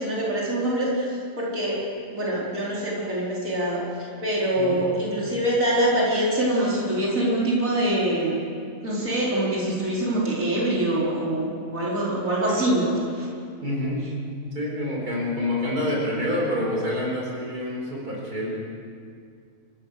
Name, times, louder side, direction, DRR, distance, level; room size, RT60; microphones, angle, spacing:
voice 1, 0.0-1.8 2.1-8.4 8.8-13.3, right 1 dB, 60° right, -6 dB, 4.9 m, -24 dB
voice 2, 13.6-14.1 14.6-18.6, left 1 dB, 90° right, -3 dB, 5.1 m, -27 dB
29.5 x 15.5 x 6.7 m, 2.3 s
omnidirectional pair, 1.6 m